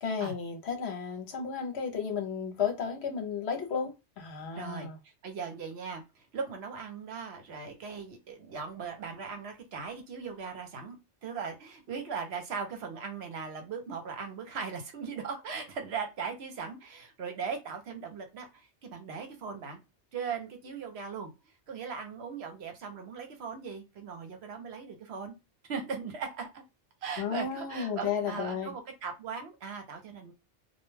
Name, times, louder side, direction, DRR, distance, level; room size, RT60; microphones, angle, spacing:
voice 1, 0.0-5.0 27.2-28.7, left 6 dB, 70° left, 0.9 m, -33 dB
voice 2, 4.5-4.9 5.2-19.8 20.1-25.3 25.6-26.6 27.0-30.3, right 5 dB, 65° right, 0.9 m, -39 dB
2.3 x 2.1 x 3.2 m
omnidirectional pair, 1.2 m